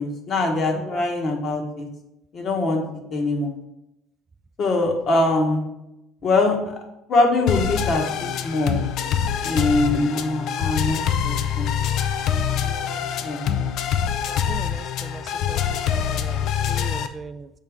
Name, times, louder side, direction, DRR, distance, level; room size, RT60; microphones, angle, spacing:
voice 1, 0.0-1.9 2.3-2.8 3.1-3.5 4.6-5.6 6.2-6.6 7.1-8.8 9.4-11.7 13.2-13.5, left 2 dB, 50° left, 2 dB, 1.3 m, -22 dB
voice 2, 0.7-1.1 12.6-13.1 14.3-15.6 15.9-17.5, right 4 dB, 30° right, 9 dB, 0.3 m, -39 dB
sound 1, 7.5-17.1, left 8 dB, 65° left, 0.4 m, -25 dB
6.6 x 4.4 x 3.6 m, 0.90 s
supercardioid pair, 85°, 0 cm